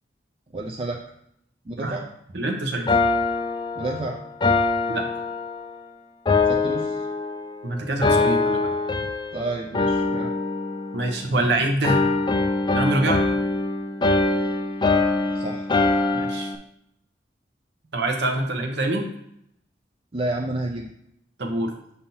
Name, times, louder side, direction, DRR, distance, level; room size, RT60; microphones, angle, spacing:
voice 1, 0.5-1.0 1.6-2.1 3.8-4.2 6.4-7.1 9.3-10.3 15.3-15.7 20.1-20.9, right 2 dB, 30° right, 0 dB, 0.5 m, -30 dB
voice 2, 2.3-2.9 4.9-5.1 7.6-8.7 10.9-12.0 12.7-13.2 16.1-16.5 17.9-19.1 21.4-21.7, right 2 dB, 65° right, 2 dB, 0.9 m, -25 dB
sound 1, 2.9-5.8 6.3-7.6 8.0-9.4 9.7-11.5 11.8-16.6, left 3 dB, 25° left, 0.4 m, -23 dB
7.0 x 2.8 x 5.5 m, 0.76 s
head